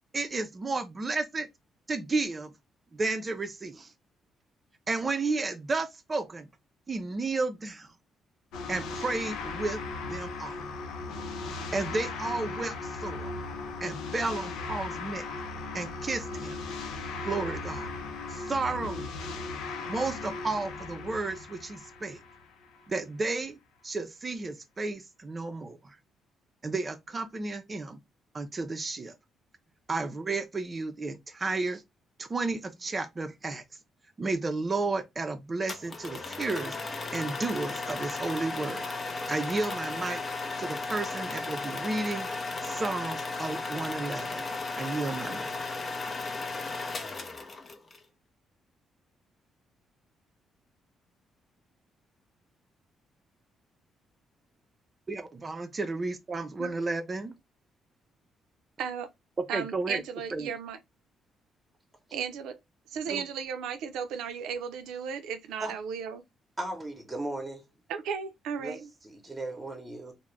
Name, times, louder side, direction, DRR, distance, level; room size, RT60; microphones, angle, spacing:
voice 1, 0.1-1.5 1.9-2.5 2.9-3.9 4.9-6.5 6.9-7.9 8.7-10.6 11.7-13.3 13.8-15.3 15.7-16.6 17.2-17.9 18.3-19.1 19.9-22.2 22.9-23.6 23.8-26.0 26.6-28.0 28.3-29.1 29.9-31.8 32.2-33.6 34.2-36.8 37.1-40.2 40.6-42.3 42.6-44.5 44.8-45.5 55.1-57.3 59.5-60.0 60.3-60.5, right 3 dB, 30° right, 0.4 m, -32 dB
sound 1, 8.5-22.9, left 3 dB, 90° left, 0.5 m, -37 dB
sound 2, 35.7-48.0, left 3 dB, 35° left, 0.5 m, -35 dB
voice 2, 58.8-59.1 59.5-60.8 62.1-62.6 62.9-66.2 67.9-68.9, right 7 dB, 90° right, 0.5 m, -35 dB
voice 3, 66.6-67.6 68.6-70.1, right 2 dB, 15° right, 0.8 m, -37 dB
2.4 x 2.1 x 3.1 m
cardioid pair, 90°, 0 cm